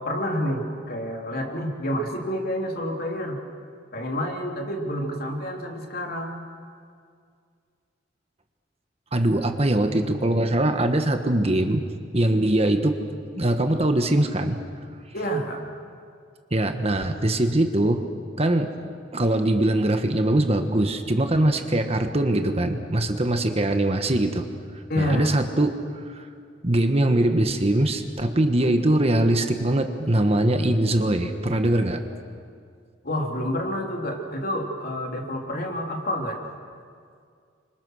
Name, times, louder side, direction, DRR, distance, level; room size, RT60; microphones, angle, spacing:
voice 1, 0.0-3.4 3.9-6.4 15.1-15.6 24.9-25.4 33.0-36.4, equal, 55° left, 1 dB, 3.4 m, -28 dB
voice 2, 9.1-11.8 12.1-13.0 13.4-14.6 16.5-18.0 18.4-24.4 25.0-25.8 26.1-26.2 26.6-32.0, right 1 dB, 35° right, 6 dB, 1.4 m, -22 dB
28.5 x 25.5 x 6.5 m, 2.2 s
head